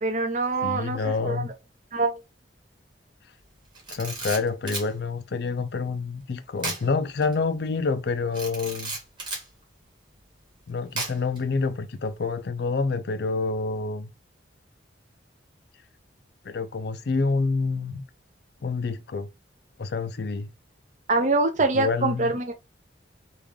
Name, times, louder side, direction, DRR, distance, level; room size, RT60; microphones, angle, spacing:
voice 1, 0.0-1.5 1.9-2.2 21.1-22.5, right 3 dB, 40° right, 0.5 m, -24 dB
voice 2, 0.6-1.5 3.9-9.0 10.7-14.1 16.4-18.0 18.6-19.3 19.8-20.5 21.7-22.3, left 4 dB, 60° left, 0.4 m, -27 dB
Camera, 3.7-4.9 6.6-6.9 7.2-7.3 8.3-9.5 11.0-11.4, right 3 dB, 25° right, 1.3 m, -33 dB
3.5 x 2.5 x 3.2 m
head